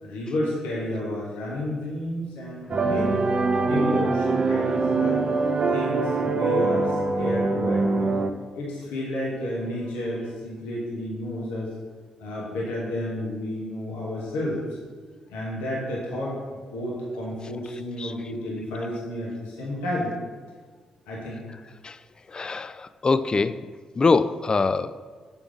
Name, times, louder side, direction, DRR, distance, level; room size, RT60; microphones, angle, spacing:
voice 1, 0.0-3.2 3.6-5.2 5.7-8.1 8.5-11.7 12.2-14.6 15.3-16.4 16.7-20.1 21.1-21.4, left 1 dB, 80° left, -5 dB, 1.3 m, -31 dB
sound 1, 2.7-8.3, right 3 dB, 40° right, 0.5 m, -23 dB
voice 2, 22.3-23.7 23.9-25.0, left 4 dB, 35° left, 13 dB, 0.3 m, -23 dB
7.0 x 3.5 x 4.9 m, 1.5 s
hypercardioid pair, 40°, 2 cm